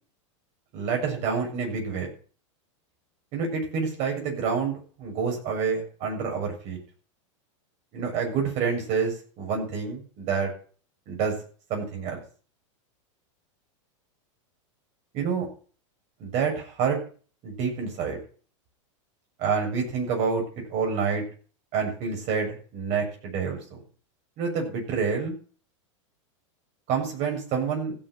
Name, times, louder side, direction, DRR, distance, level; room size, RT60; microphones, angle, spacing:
voice 1, 0.7-2.1 3.3-6.8 7.9-10.5 11.1-11.4 11.7-12.2 15.1-15.5 16.2-17.0 17.4-18.2 19.4-20.4 20.7-21.2 21.7-23.8 24.4-25.3 26.9-27.9, right 5 dB, 45° right, 2 dB, 7.1 m, -28 dB
16.0 x 7.4 x 6.2 m, 0.40 s
supercardioid pair, 135°, 17 cm